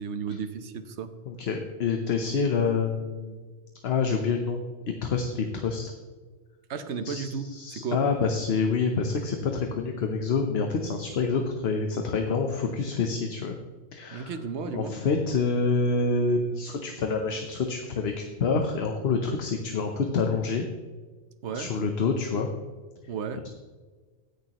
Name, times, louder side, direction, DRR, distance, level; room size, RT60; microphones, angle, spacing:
voice 1, 0.0-1.1 6.7-8.0 14.1-14.9 21.4-21.7 23.1-23.4, right 5 dB, 80° right, 10 dB, 1.1 m, -33 dB
voice 2, 1.3-3.4 3.8-4.6 5.0-5.9 7.0-13.6 13.9-14.3 14.7-20.6 21.5-22.5, left 4 dB, 65° left, 4 dB, 1.0 m, -27 dB
16.5 x 6.7 x 3.0 m, 1.4 s
omnidirectional pair, 1.2 m